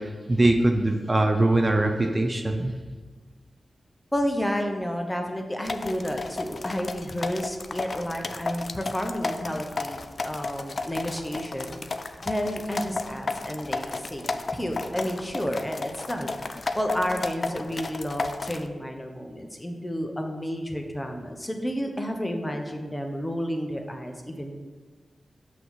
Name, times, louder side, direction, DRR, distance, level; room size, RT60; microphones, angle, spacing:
voice 1, 0.0-2.7, right 2 dB, 35° right, 5 dB, 0.5 m, -22 dB
voice 2, 4.1-11.8 12.2-16.3 16.7-24.5, equal, 15° left, 3 dB, 0.9 m, -31 dB
sound 1, 5.6-18.7, left 3 dB, 55° left, 0.3 m, -33 dB
6.0 x 3.0 x 5.4 m, 1.4 s
cardioid pair, 40°, 0 cm